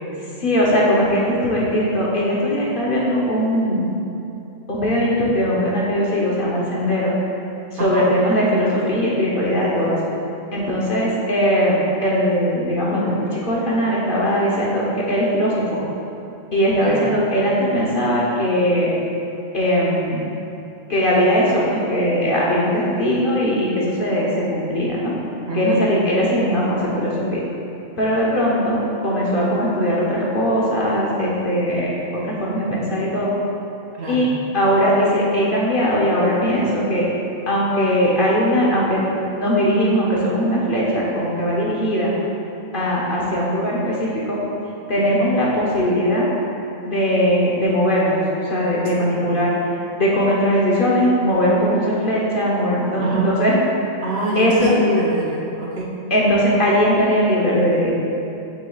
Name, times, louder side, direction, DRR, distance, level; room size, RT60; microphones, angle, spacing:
voice 1, 0.4-3.9 4.7-7.1 7.7-10.0 10.5-15.8 16.5-18.9 19.5-20.3 20.9-25.1 25.5-27.4 28.0-32.0 32.2-33.3 34.1-34.3 34.5-37.1 37.5-39.0 39.3-42.1 42.7-44.4 44.9-46.3 46.8-48.2 48.5-49.5 50.0-53.6 54.4-54.7 56.1-58.0, equal, 45° left, -5 dB, 1.0 m, -19 dB
voice 2, 25.5-25.8 34.0-34.3 49.0-49.2 53.0-53.3 54.0-55.9, right 1 dB, 60° right, -4 dB, 1.0 m, -23 dB
6.6 x 6.2 x 2.4 m, 2.8 s
omnidirectional pair, 1.3 m